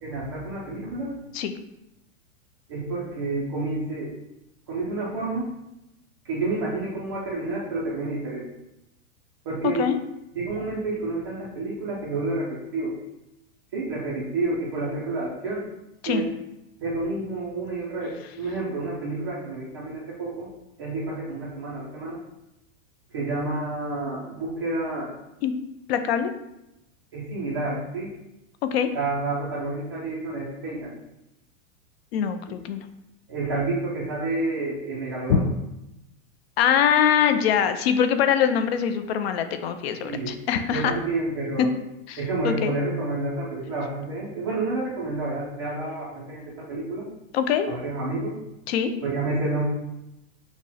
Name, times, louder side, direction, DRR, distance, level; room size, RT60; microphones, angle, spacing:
voice 1, 0.0-1.1 2.7-4.1 4.7-5.5 6.2-8.4 9.4-9.9 10.3-12.9 13.7-15.6 16.1-16.3 16.8-20.5 20.8-22.2 23.1-25.1 27.1-28.1 28.9-30.9 32.5-32.6 33.3-35.4 40.0-40.3 40.7-41.7 42.2-47.1 47.7-48.4 49.0-49.7, right 2 dB, 20° right, -7 dB, 0.3 m, -29 dB
voice 2, 9.6-10.0 16.0-16.2 25.4-25.5 25.9-26.3 28.6-28.9 32.1-32.8 35.3-35.4 36.6-40.9 41.6-41.7 42.1-42.7 47.3-47.7 48.7-48.9, left 8 dB, 50° left, 9 dB, 0.5 m, -23 dB
5.9 x 2.1 x 4.0 m, 0.90 s
supercardioid pair, 170°, 40 cm